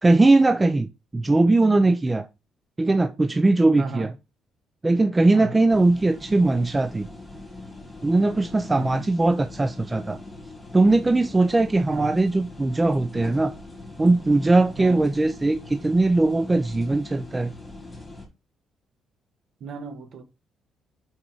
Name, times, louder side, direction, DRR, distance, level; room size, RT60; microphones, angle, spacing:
voice 1, 0.0-2.3 2.8-4.1 4.8-7.1 8.0-10.2 10.7-13.5 14.0-17.5, right 2 dB, 15° right, 0.4 m, -20 dB
voice 2, 3.8-4.1 5.3-5.6 8.7-9.1 11.9-12.2 14.8-15.0 19.6-20.2, right 4 dB, 50° right, 1.4 m, -36 dB
sound 1, 5.7-18.3, left 2 dB, 5° left, 2.5 m, -42 dB
6.1 x 4.3 x 4.5 m
cardioid pair, 165°, 0 cm